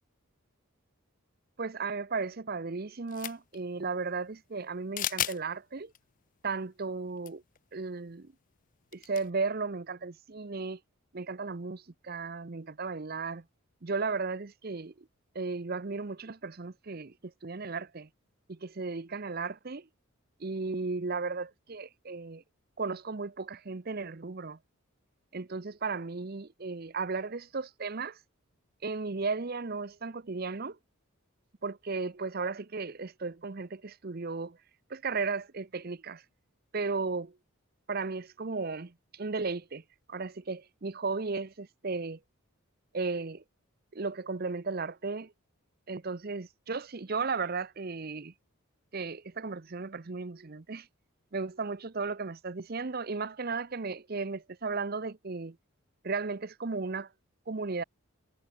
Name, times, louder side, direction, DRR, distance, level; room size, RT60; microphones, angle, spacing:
voice 1, 1.6-5.9 6.4-7.4 7.7-8.3 8.9-10.8 11.1-13.4 13.8-15.1 15.3-18.1 18.5-19.9 20.4-22.4 22.8-24.6 25.3-28.2 28.8-30.8 31.6-34.6 34.9-36.2 36.7-37.4 37.9-39.8 40.1-42.2 42.9-43.4 43.9-45.3 45.9-48.3 48.9-50.9 51.3-55.6 56.0-57.1 57.5-57.8, right 4 dB, 45° right, 0.7 m, -35 dB
sound 1, 3.1-3.6 5.0-5.4 5.9-6.0 7.2-7.3 7.6-7.7 8.9-9.3, left 12 dB, 35° left, 0.5 m, -33 dB
head